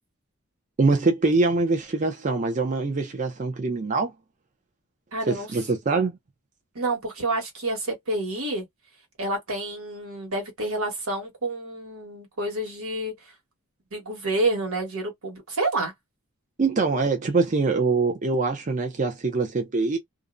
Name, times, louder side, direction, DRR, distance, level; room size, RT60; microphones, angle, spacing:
voice 1, 0.8-4.1 5.3-6.1 16.6-20.0, right 3 dB, 35° right, 0.5 m, -23 dB
voice 2, 5.1-5.5 6.7-8.6 9.2-13.1 13.9-15.9, right 2 dB, 80° right, 1.3 m, -28 dB
2.4 x 2.1 x 2.4 m
head